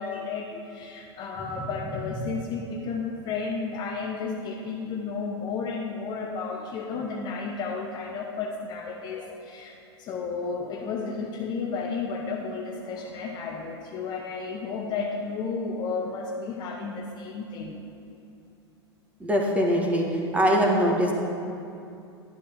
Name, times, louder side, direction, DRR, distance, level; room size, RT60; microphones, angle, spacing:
voice 1, 0.0-17.8, left 4 dB, 30° left, 1 dB, 0.9 m, -32 dB
voice 2, 19.2-20.1 20.3-21.2, equal, 10° right, 0 dB, 1.6 m, -22 dB
12.0 x 11.0 x 3.6 m, 2.6 s
figure-of-eight pair, 95°, 14 cm